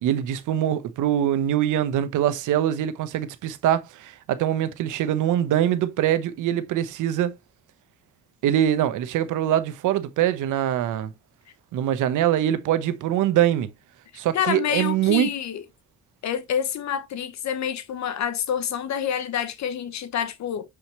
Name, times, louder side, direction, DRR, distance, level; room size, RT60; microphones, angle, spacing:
voice 1, 0.0-7.4 8.4-11.1 11.7-13.7 14.1-15.3, right 11 dB, 85° right, 0.9 m, -23 dB
voice 2, 14.3-15.6 16.2-20.6, left 9 dB, 65° left, 1.2 m, -27 dB
7.0 x 5.0 x 2.9 m
cardioid pair, 90°, 30 cm